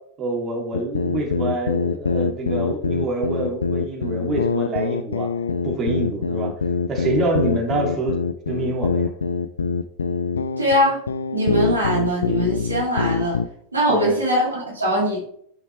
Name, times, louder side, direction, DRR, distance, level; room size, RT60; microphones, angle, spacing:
voice 1, 0.2-5.3 5.6-6.5 6.9-8.2 8.5-9.1 13.9-14.2, right 2 dB, 35° right, 0 dB, 2.3 m, -26 dB
sound 1, 0.7-13.5, left 5 dB, 85° left, 0.4 m, -24 dB
voice 2, 10.6-11.0 11.3-13.4 13.7-15.2, equal, 90° right, -4 dB, 2.7 m, -21 dB
9.8 x 5.6 x 3.3 m, 0.69 s
figure-of-eight pair, 90°, 0 cm